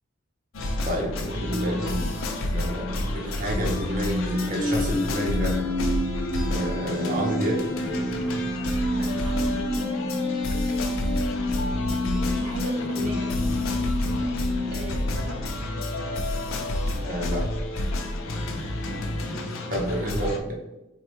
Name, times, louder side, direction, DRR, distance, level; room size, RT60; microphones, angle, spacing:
sound 1, 0.5-20.4, left 1 dB, 70° left, 0.5 m, -29 dB
voice 1, 0.8-2.1 2.5-5.6 6.5-7.6 12.0-12.4 13.0-13.1 17.0-17.6 19.7-20.6, equal, 40° right, -1 dB, 0.6 m, -29 dB
sound 2, 3.5-15.6, left 1 dB, 15° left, 0.4 m, -29 dB
voice 2, 8.9-9.7 12.3-13.4 14.6-15.4 18.8-20.3, right 1 dB, 85° right, 1 dB, 0.6 m, -38 dB
4.0 x 2.2 x 2.9 m, 0.94 s
head